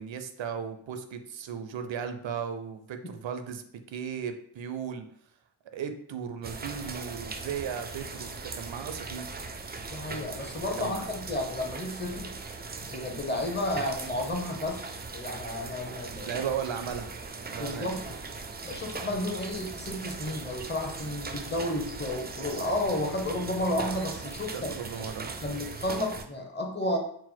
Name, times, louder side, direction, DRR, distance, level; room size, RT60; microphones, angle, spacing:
voice 1, 0.0-5.1 5.7-9.3 10.8-11.0 16.2-17.1 17.5-17.9 24.5-25.3, right 7 dB, 80° right, 8 dB, 0.5 m, -36 dB
sound 1, 6.4-26.3, right 4 dB, 25° right, 0.3 m, -39 dB
voice 2, 9.9-12.4 12.8-16.4 17.6-18.0 18.6-25.1 25.4-27.0, left 1 dB, 25° left, 2 dB, 0.7 m, -32 dB
4.1 x 2.1 x 4.4 m, 0.66 s
wide cardioid pair, 90°, 45 cm